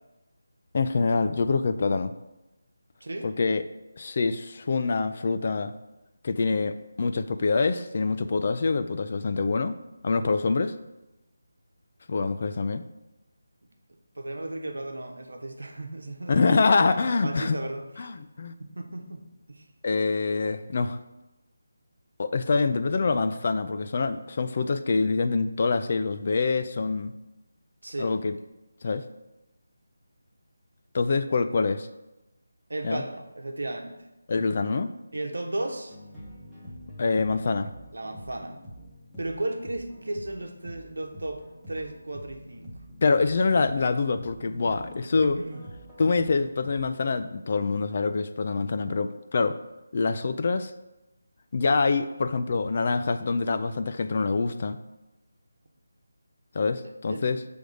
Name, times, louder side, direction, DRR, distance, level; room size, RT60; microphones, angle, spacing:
voice 1, 0.7-2.1 3.2-3.6 4.0-5.7 6.2-9.8 10.0-10.7 12.1-12.8 16.3-17.6 18.0-18.5 19.8-21.0 22.2-27.1 28.0-28.3 28.8-29.0 30.9-31.9 32.8-33.0 34.3-34.9 37.0-37.7 43.0-45.4 46.0-49.6 49.9-50.7 51.5-54.8 56.5-57.4, left 4 dB, 40° left, 10 dB, 0.4 m, -25 dB
voice 2, 3.0-3.3 13.6-13.7 14.1-16.5 17.0-18.1 18.7-19.6 27.8-28.1 32.7-34.0 35.1-36.0 37.9-38.6 39.2-42.7 45.2-45.6 57.1-57.3, right 2 dB, 85° right, 3 dB, 1.0 m, -35 dB
sound 1, 35.9-46.9, equal, ahead, 1.0 m, -46 dB
6.2 x 3.4 x 5.2 m, 0.99 s
figure-of-eight pair, 170°, 0 cm